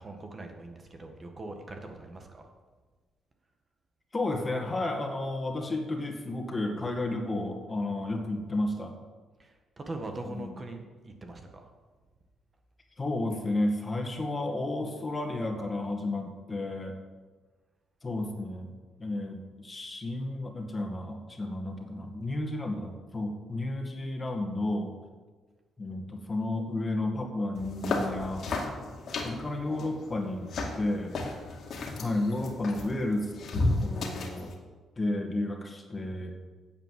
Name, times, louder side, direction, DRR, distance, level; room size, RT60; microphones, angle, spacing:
voice 1, 0.0-2.5 9.4-11.7, right 2 dB, 30° right, 4 dB, 1.6 m, -42 dB
voice 2, 4.1-8.9 10.3-10.6 13.0-16.9 18.0-18.7 19.0-24.9 25.8-28.5 29.2-31.2 32.0-34.5 35.0-36.3, left 2 dB, 25° left, 3 dB, 2.0 m, -32 dB
sound 1, 27.5-34.5, left 2 dB, 60° left, 2.3 m, -34 dB
9.5 x 7.7 x 7.5 m, 1.4 s
cardioid pair, 90°, 0 cm